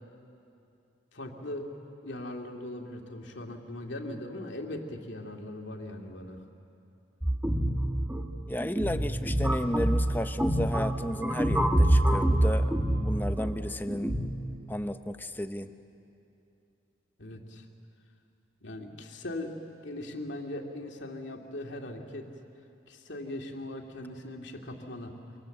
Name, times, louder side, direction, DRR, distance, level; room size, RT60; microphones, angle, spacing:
voice 1, 1.1-1.7 2.0-6.4 17.2-17.7 18.6-19.5 19.8-22.3 22.9-25.1, left 1 dB, 75° left, 2 dB, 2.3 m, -39 dB
sound 1, 7.2-14.3, right 1 dB, 10° right, 1.5 m, -26 dB
voice 2, 8.5-14.2 14.7-15.7, left 1 dB, 10° left, 9 dB, 0.7 m, -33 dB
26.0 x 25.5 x 7.8 m, 2.7 s
head